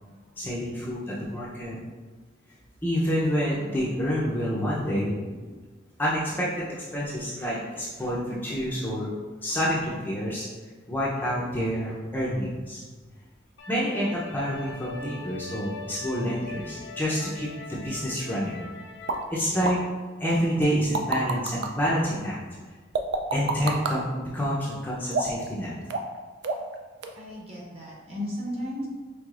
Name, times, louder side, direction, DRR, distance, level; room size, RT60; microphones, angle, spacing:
voice 1, 0.4-1.8 2.8-5.5 6.0-9.1 9.4-10.5 10.9-12.8 13.7-18.6 19.3-19.8 20.2-22.4 23.3-25.7, equal, 10° left, -7 dB, 0.5 m, -28 dB
sound 1, 13.6-19.2, left 3 dB, 65° left, 0.5 m, -41 dB
sound 2, 19.1-19.2 19.6-19.8 20.6-21.7 22.9-24.0 25.1-25.5 25.9-26.2 26.4-26.7 27.0-27.1, right 3 dB, 60° right, 0.4 m, -27 dB
voice 2, 27.2-28.9, equal, 30° right, -4 dB, 0.9 m, -34 dB
4.8 x 3.3 x 2.4 m, 1.4 s
head